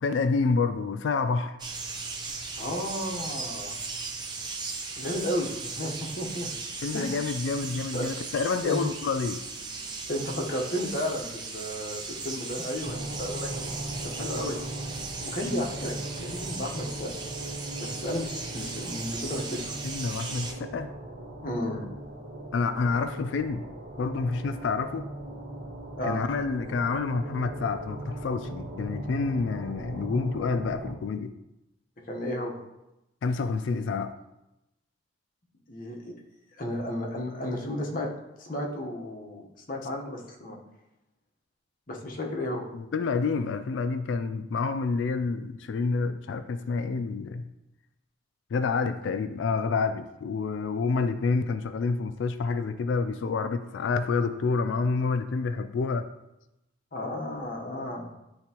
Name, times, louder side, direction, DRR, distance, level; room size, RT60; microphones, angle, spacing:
voice 1, 0.0-1.6 6.8-9.4 19.8-20.9 22.5-23.6 24.0-25.1 26.1-31.3 33.2-34.1 42.7-47.5 48.5-56.1, left 4 dB, 70° left, 10 dB, 0.3 m, -28 dB
sound 1, 1.6-20.5, right 4 dB, 20° right, 0.7 m, -37 dB
voice 2, 2.6-3.8 5.0-6.5 6.9-7.2 7.9-8.1 8.6-8.8 10.1-13.7 14.0-14.6 15.2-17.1 17.8-19.6 21.4-21.9 26.0-26.2 32.1-32.6 35.7-36.1 36.5-38.1 38.4-40.6 41.9-42.7 56.9-58.1, left 1 dB, 45° left, 0 dB, 1.0 m, -33 dB
sound 2, 12.8-30.9, right 1 dB, 75° right, 1.2 m, -39 dB
9.7 x 3.4 x 2.9 m, 0.91 s
head